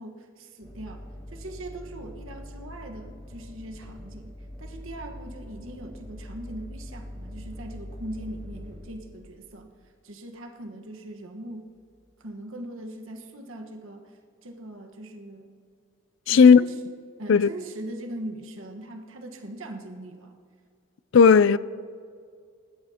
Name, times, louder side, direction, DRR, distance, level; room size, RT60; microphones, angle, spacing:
voice 1, 0.0-9.7 10.0-11.7 12.2-15.5 16.2-16.8 17.2-20.3, right 1 dB, 70° right, 1.3 m, -40 dB
sound 1, 0.6-9.7 11.8-12.1, equal, 20° left, 2.3 m, -43 dB
voice 2, 16.3-16.6 17.3-17.5 21.1-21.6, left 5 dB, 60° left, 0.3 m, -14 dB
21.0 x 12.0 x 2.9 m
head